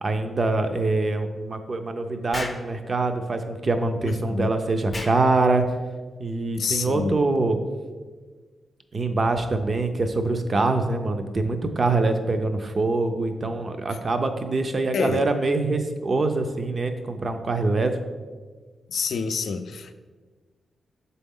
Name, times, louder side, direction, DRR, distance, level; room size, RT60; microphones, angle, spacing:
voice 1, 0.0-5.6 6.2-7.6 8.9-17.9, right 3 dB, 35° right, 7 dB, 0.5 m, -24 dB
Explosion, 2.3-2.7 4.9-5.2, left 2 dB, 25° left, 0.5 m, -33 dB
voice 2, 4.0-4.5 6.6-7.2 14.9-15.3 18.9-19.9, left 5 dB, 70° left, 9 dB, 0.4 m, -28 dB
6.8 x 4.1 x 3.6 m, 1.4 s
wide cardioid pair, 125°, 0 cm